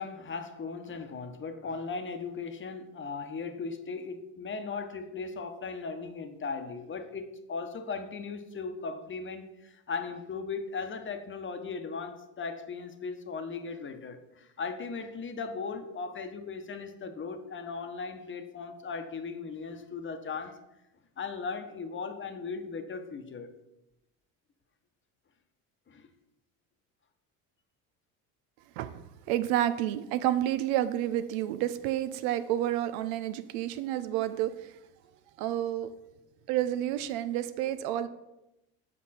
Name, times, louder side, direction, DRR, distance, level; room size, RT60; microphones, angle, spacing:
voice 1, 0.0-20.6 21.2-23.5 25.9-26.1, left 4 dB, 30° left, 7 dB, 1.1 m, -38 dB
voice 2, 28.8-34.7 35.4-35.9 36.5-38.1, right 12 dB, 75° right, 10 dB, 0.7 m, -30 dB
7.7 x 5.3 x 4.2 m, 0.91 s
hypercardioid pair, 80°, 42 cm